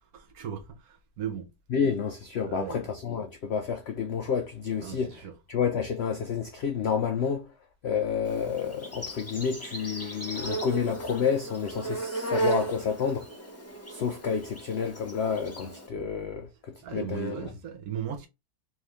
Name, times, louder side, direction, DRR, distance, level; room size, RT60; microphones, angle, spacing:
voice 1, 0.1-1.5 2.4-2.9 4.8-5.3 16.8-18.3, right 8 dB, 70° right, 1.3 m, -37 dB
voice 2, 1.7-7.5 7.8-13.2 13.9-16.5 16.9-17.5, left 6 dB, 90° left, 0.5 m, -29 dB
Insect, 8.2-15.9, right 2 dB, 15° left, 0.6 m, -35 dB
3.6 x 3.2 x 3.2 m
omnidirectional pair, 1.7 m